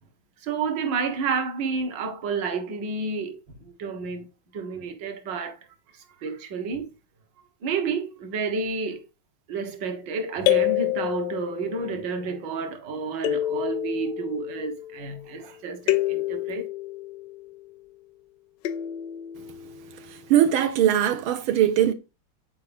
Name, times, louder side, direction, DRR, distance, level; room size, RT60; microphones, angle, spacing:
voice 1, 0.4-4.3 4.5-5.7 5.9-6.9 7.6-9.1 9.5-16.7, right 4 dB, 60° right, 1.8 m, -30 dB
sound 1, 10.5-11.9 13.2-15.3 15.9-18.0 18.6-20.0, left 15 dB, 75° left, 1.0 m, -28 dB
voice 2, 20.3-21.9, right 10 dB, 90° right, 1.7 m, -20 dB
8.5 x 4.8 x 3.4 m
omnidirectional pair, 2.3 m